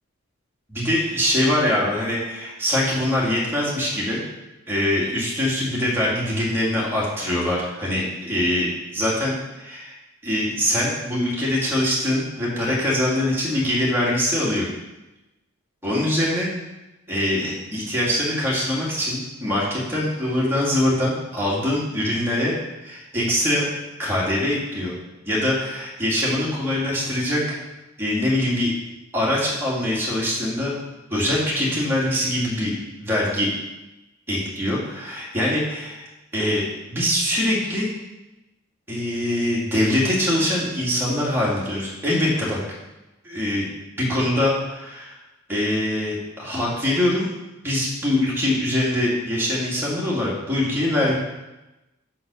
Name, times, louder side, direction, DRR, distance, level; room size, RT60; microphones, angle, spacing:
voice 1, 0.7-4.2 4.7-8.7 8.9-9.9 10.2-14.7 15.8-16.5 17.1-22.5 22.8-23.7 24.0-25.0 25.3-27.6 28.0-28.7 29.1-30.7 31.1-32.7 33.0-33.5 34.3-36.1 36.3-36.6 36.9-37.9 38.9-42.6 43.2-43.7 44.0-45.2 45.5-47.3 47.6-51.1, left 1 dB, 10° right, -6 dB, 2.3 m, -23 dB
6.2 x 6.1 x 6.8 m, 1.0 s
head